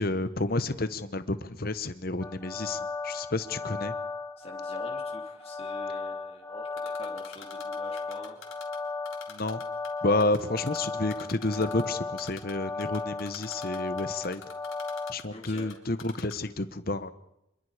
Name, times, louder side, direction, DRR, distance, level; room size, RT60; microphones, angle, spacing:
voice 1, 0.0-3.9 9.3-9.6 10.0-14.4 15.1-17.1, left 2 dB, 45° left, 12 dB, 1.1 m, -30 dB
sound 1, 2.2-15.1, left 3 dB, 10° left, 1.0 m, -36 dB
voice 2, 4.4-8.4 15.3-15.7, left 2 dB, 30° left, -1 dB, 3.4 m, -46 dB
Typing, 6.8-8.8 9.1-9.9 10.2-11.8 12.2-12.5 12.8-15.7 16.0-16.3, left 7 dB, 80° left, 3.8 m, -45 dB
26.5 x 21.5 x 5.1 m, 0.88 s
head